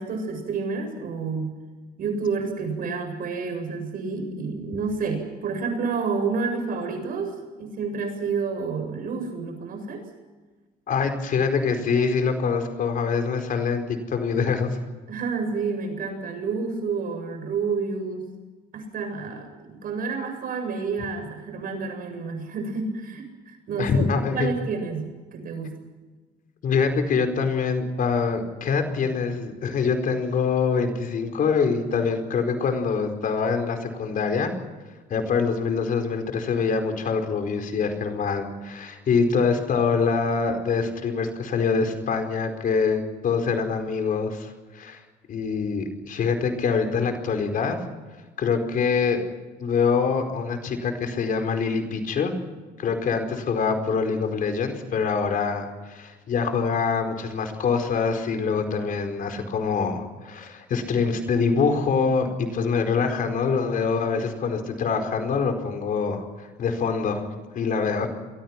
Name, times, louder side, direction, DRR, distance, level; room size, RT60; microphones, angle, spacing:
voice 1, 0.0-1.6 2.0-10.0 15.1-18.3 18.7-24.1 24.3-25.8, right 4 dB, 60° right, 5 dB, 7.9 m, -29 dB
voice 2, 10.9-14.7 23.8-24.5 26.6-34.5 35.1-45.0 45.3-47.8 48.4-49.2 49.6-52.3 52.8-67.3 67.5-68.1, left 5 dB, 55° left, 6 dB, 4.8 m, -25 dB
30.0 x 23.0 x 6.1 m, 1.3 s
cardioid pair, 110°, 17 cm